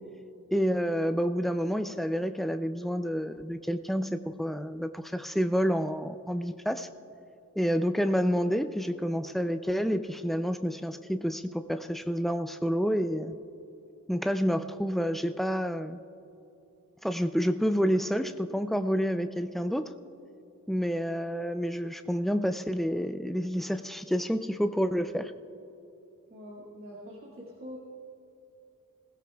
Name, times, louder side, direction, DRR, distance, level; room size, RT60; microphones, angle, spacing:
voice 1, 0.5-6.9 7.6-13.3 14.1-16.0 17.0-19.9 20.7-25.3, equal, ahead, 8 dB, 0.3 m, -29 dB
voice 2, 26.3-27.8, equal, 45° right, -6 dB, 1.9 m, -44 dB
21.0 x 16.5 x 2.3 m, 2.8 s
head